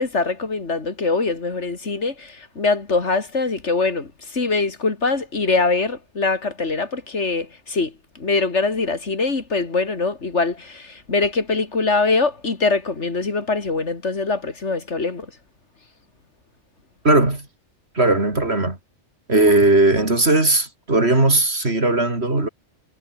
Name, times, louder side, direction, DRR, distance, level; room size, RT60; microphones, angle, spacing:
voice 1, 0.0-15.3, left 3 dB, 85° left, 3.0 m, -23 dB
voice 2, 17.0-17.5 17.9-18.8 19.3-22.5, right 2 dB, 65° right, 4.6 m, -17 dB
omnidirectional pair, 1.2 m